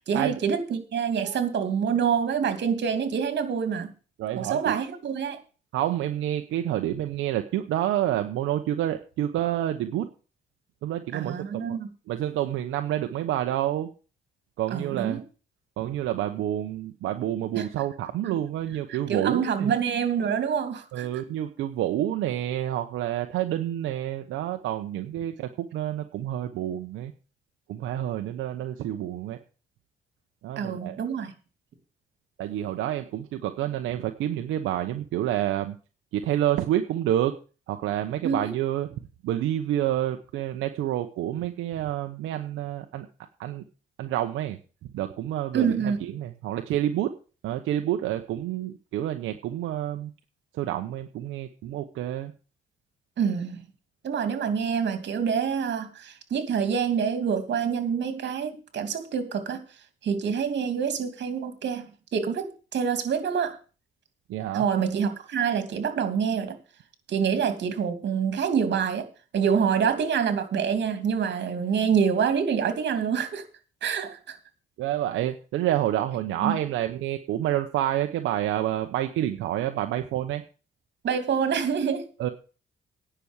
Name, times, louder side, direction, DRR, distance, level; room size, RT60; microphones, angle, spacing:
voice 1, 0.1-3.9 4.4-5.4 11.1-11.9 14.7-15.2 17.5-17.6 18.9-21.1 30.6-31.3 38.2-38.5 45.5-46.0 53.2-53.6 54.0-59.6 60.0-61.9 62.1-63.6 64.5-66.6 67.1-69.0 69.3-73.4 73.8-74.4 76.4-76.6 81.0-82.0, right 7 dB, 60° right, 8 dB, 2.7 m, -26 dB
voice 2, 4.2-4.8 5.7-10.1 10.8-11.8 12.1-13.9 14.6-15.2 15.8-19.7 20.9-27.1 27.7-29.4 30.4-31.0 32.4-35.8 36.1-37.3 37.7-38.9 39.2-43.1 43.4-43.6 44.0-44.6 44.9-47.1 47.4-50.1 50.5-52.3 64.3-64.7 74.8-80.4 82.2-82.3, right 12 dB, 85° right, 6 dB, 0.9 m, -28 dB
10.0 x 6.2 x 8.1 m, 0.36 s
cardioid pair, 90°, 20 cm